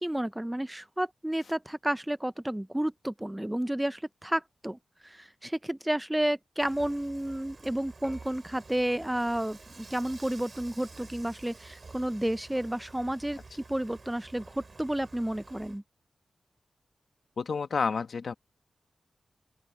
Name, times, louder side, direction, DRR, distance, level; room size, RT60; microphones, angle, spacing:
voice 1, 0.0-15.8, right 1 dB, 5° right, 0.3 m, -31 dB
Dishes pots and pans / Frying (food), 6.6-15.8, right 3 dB, 35° right, 6.5 m, -50 dB
voice 2, 17.4-18.3, left 5 dB, 60° left, 1.0 m, -29 dB
open air
wide cardioid pair, 175°, 0 cm